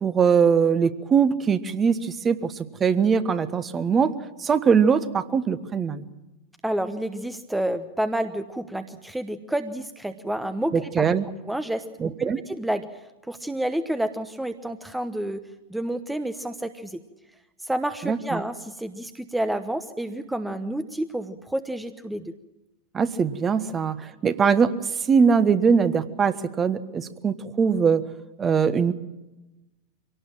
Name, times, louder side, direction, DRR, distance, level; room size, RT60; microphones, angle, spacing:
voice 1, 0.0-2.5 2.8-4.1 4.4-6.1 10.7-11.3 12.0-12.4 18.0-18.4 22.9-24.7 25.1-28.1 28.4-28.9, right 6 dB, 20° right, 12 dB, 1.3 m, -21 dB
voice 2, 6.6-11.1 11.5-17.0 17.6-22.3, right 1 dB, 5° right, 10 dB, 1.0 m, -29 dB
25.0 x 18.0 x 7.5 m, 1.1 s
figure-of-eight pair, 90°, 0 cm